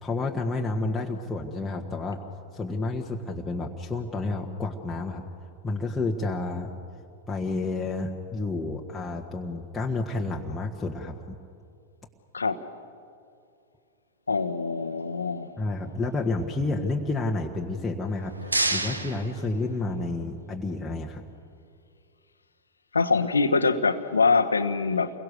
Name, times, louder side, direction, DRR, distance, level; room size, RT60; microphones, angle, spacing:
voice 1, 0.0-2.2 2.5-5.2 5.6-6.7 7.3-11.4 15.6-21.2, left 2 dB, 10° left, -2 dB, 1.7 m, -30 dB
voice 2, 14.3-15.5 22.9-25.1, left 4 dB, 75° left, 9 dB, 1.2 m, -24 dB
sound 1, 18.0-20.2, right 2 dB, 80° right, 1.5 m, -30 dB
30.0 x 23.0 x 6.8 m, 2.4 s
figure-of-eight pair, 90°, 0 cm